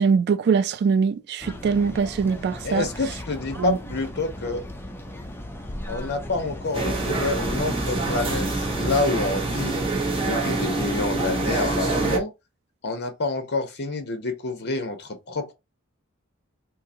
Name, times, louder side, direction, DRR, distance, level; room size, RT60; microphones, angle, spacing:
voice 1, 0.0-2.9 3.6-3.8, right 5 dB, 50° right, 0.3 m, -22 dB
sound 1, 1.4-9.0, left 1 dB, 10° left, 0.5 m, -37 dB
voice 2, 2.6-4.7 5.9-9.7 10.2-12.3 12.8-15.5, left 3 dB, 50° left, 0.9 m, -28 dB
sound 2, 6.7-12.2, right 2 dB, 25° right, 1.0 m, -26 dB
3.8 x 2.6 x 2.7 m
head